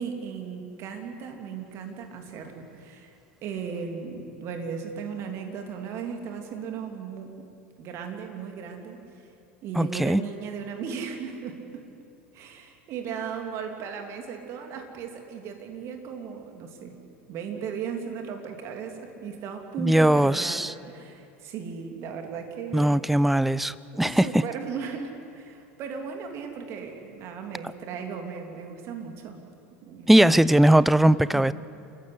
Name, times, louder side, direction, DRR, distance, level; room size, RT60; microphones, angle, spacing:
voice 1, 0.0-3.2 3.4-7.3 7.8-9.0 9.6-11.9 12.3-17.0 17.3-23.0 23.9-29.4 29.8-30.2, right 6 dB, 45° right, 4 dB, 3.1 m, -36 dB
voice 2, 9.8-10.2 19.8-20.7 22.7-24.4 30.1-31.5, right 1 dB, ahead, 19 dB, 0.5 m, -20 dB
30.0 x 14.5 x 8.3 m, 2.5 s
figure-of-eight pair, 80°, 7 cm